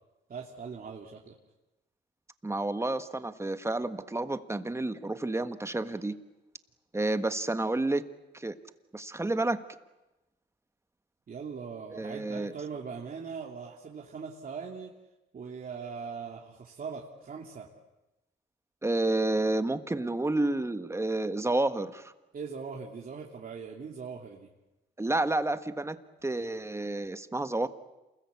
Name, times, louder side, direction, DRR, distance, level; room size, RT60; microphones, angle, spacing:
voice 1, 0.3-1.3 11.3-14.9 15.3-17.7 22.3-24.5, right 5 dB, 45° right, -1 dB, 2.9 m, -40 dB
voice 2, 2.4-6.1 6.9-8.0 8.3-8.5 8.9-9.6 11.9-12.5 18.8-22.1 25.0-26.0 26.2-27.7, right 2 dB, 15° right, 10 dB, 1.5 m, -30 dB
28.5 x 21.0 x 8.5 m, 1.0 s
cardioid pair, 90°, 20 cm